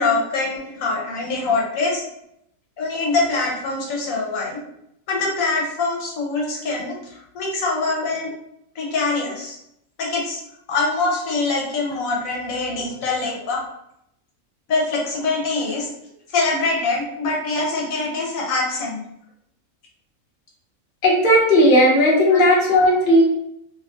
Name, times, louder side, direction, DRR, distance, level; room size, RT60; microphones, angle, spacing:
voice 1, 0.0-2.0 2.8-4.6 5.1-6.9 7.3-8.3 8.8-9.6 10.0-10.4 10.7-13.6 14.7-15.9 16.3-19.0 22.3-22.4, left 3 dB, 75° left, -2 dB, 1.1 m, -23 dB
voice 2, 21.0-23.2, equal, 45° left, -4 dB, 0.8 m, -15 dB
2.8 x 2.3 x 2.6 m, 0.78 s
omnidirectional pair, 1.4 m